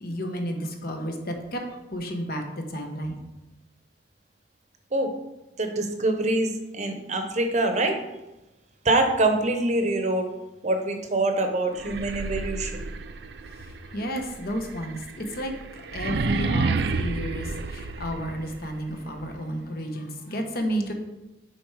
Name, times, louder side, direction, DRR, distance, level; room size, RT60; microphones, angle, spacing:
voice 1, 0.0-1.1 1.5-1.6 1.9-2.4 2.7-3.2 13.9-15.5 15.9-17.5 17.7-20.9, equal, 55° left, 3 dB, 1.0 m, -31 dB
voice 2, 5.6-8.0 8.8-10.3 10.6-12.8, right 2 dB, 40° right, 5 dB, 0.8 m, -24 dB
sound 1, 11.7-18.6, right 4 dB, 70° right, 0.4 m, -30 dB
7.0 x 4.3 x 4.8 m, 0.99 s
head